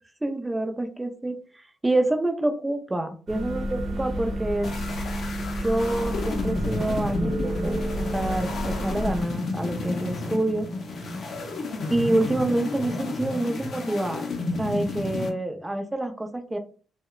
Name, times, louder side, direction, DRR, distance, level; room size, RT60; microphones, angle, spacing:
voice 1, 0.2-1.4 1.8-4.7 5.6-10.7 11.9-14.2 14.6-16.6, right 1 dB, 15° right, 5 dB, 0.4 m, -27 dB
sound 1, 3.3-9.2, equal, 50° right, 0.9 m, -30 dB
sound 2, 4.6-15.3, left 2 dB, 50° left, 0.5 m, -32 dB
2.8 x 2.1 x 2.3 m, 0.38 s
cardioid pair, 90°, 0 cm